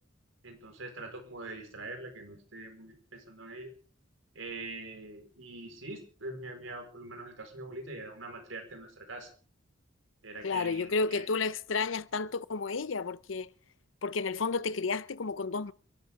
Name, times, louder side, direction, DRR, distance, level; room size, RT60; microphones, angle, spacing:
voice 1, 0.4-3.7 4.3-9.3 10.2-11.3, right 2 dB, 85° right, 4.6 m, -43 dB
voice 2, 10.4-13.5 14.0-15.7, left 4 dB, 75° left, 0.7 m, -31 dB
29.5 x 12.0 x 3.6 m
head